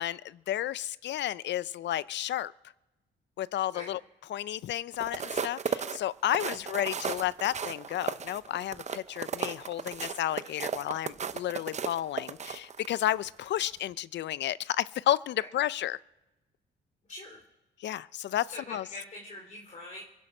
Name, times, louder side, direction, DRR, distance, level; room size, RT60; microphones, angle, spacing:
voice 1, 0.0-2.5 3.4-4.0 4.3-16.0 17.8-18.8, left 12 dB, 65° left, 20 dB, 0.5 m, -32 dB
sound 1, 4.9-13.1 13.6-13.8, right 6 dB, 35° right, 0.7 m, -35 dB
voice 2, 17.1-17.4 18.5-20.0, left 1 dB, 35° left, -1 dB, 2.9 m, -44 dB
23.0 x 11.0 x 5.4 m, 1.1 s
cardioid pair, 90°, 20 cm